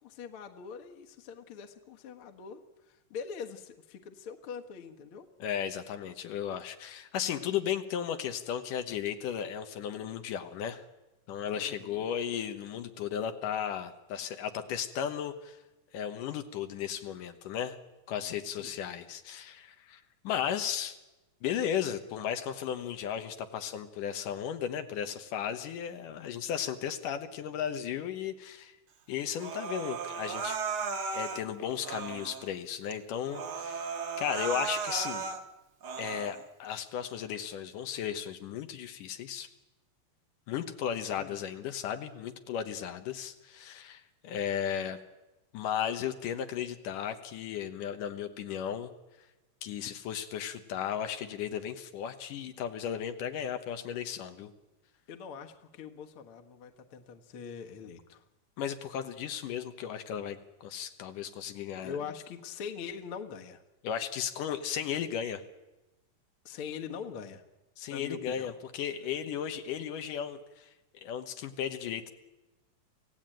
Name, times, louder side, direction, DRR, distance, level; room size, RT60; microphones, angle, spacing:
voice 1, 0.0-2.6 2.9-5.3 11.6-12.1 18.5-18.8 41.1-41.4 55.1-58.2 61.8-63.6 66.5-67.4 67.9-68.5, left 6 dB, 50° left, 4 dB, 2.0 m, -43 dB
voice 2, 5.4-10.8 11.3-15.6 15.9-17.8 18.1-21.0 21.4-28.7 29.1-30.6 31.1-33.9 34.2-35.2 36.0-39.5 40.5-45.0 45.5-48.9 49.6-54.5 58.6-62.0 63.8-65.4 67.8-70.7 71.0-72.1, left 9 dB, 85° left, 7 dB, 2.8 m, -35 dB
Human voice, 29.4-31.4 31.8-32.5 32.9-33.0 33.3-35.4 35.8-36.4, right 5 dB, 55° right, 1.8 m, -35 dB
26.5 x 16.0 x 9.0 m, 1.0 s
omnidirectional pair, 3.7 m